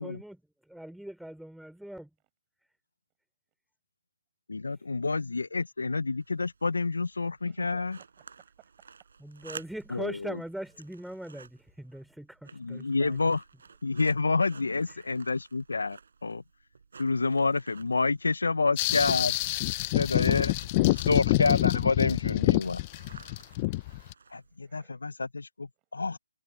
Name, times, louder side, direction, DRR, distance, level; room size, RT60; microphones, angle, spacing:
voice 1, 0.0-2.1 4.7-4.8 9.2-13.4 14.9-15.1, right 1 dB, ahead, 3.3 m, -41 dB
voice 2, 4.5-8.0 9.9-10.1 12.6-13.4 13.8-16.4 17.0-19.3 19.9-20.5 20.9-22.8 24.3-26.2, left 3 dB, 80° left, 0.6 m, -28 dB
sound 1, 5.9-24.8, right 5 dB, 60° right, 5.0 m, -53 dB
voice 3, 7.4-9.1 24.6-25.0, right 23 dB, 15° right, 7.8 m, -57 dB
sound 2, 18.8-24.1, left 20 dB, 25° left, 0.5 m, -26 dB
hypercardioid pair, 160°, 0 cm